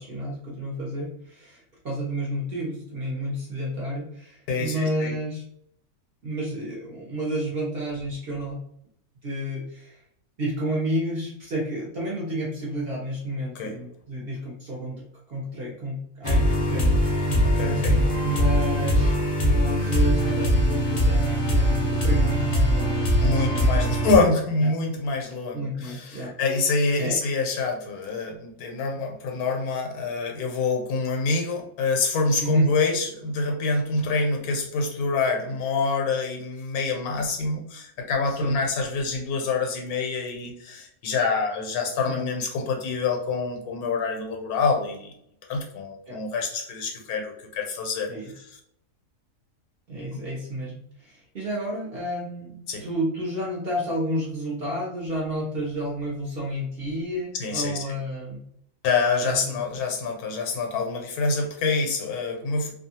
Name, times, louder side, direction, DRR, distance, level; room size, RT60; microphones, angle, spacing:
voice 1, 0.0-5.4 6.2-8.6 9.2-10.0 10.4-15.0 15.3-19.1 19.4-23.9 24.2-24.3 25.5-26.3 27.0-27.2 32.4-32.7 38.3-38.6 42.1-42.2 46.1-46.2 48.1-48.3 49.9-58.5 59.2-59.5, equal, 50° right, -4 dB, 0.8 m, -31 dB
voice 2, 4.5-5.1 13.5-13.7 17.4-18.0 23.2-45.1 45.5-48.6 50.1-50.2 52.7-52.8 57.4-58.0 58.8-62.7, left 3 dB, 80° left, 2 dB, 1.2 m, -26 dB
sound 1, 16.2-24.2, equal, 55° left, 0.3 m, -22 dB
2.7 x 2.3 x 2.7 m, 0.69 s
omnidirectional pair, 1.6 m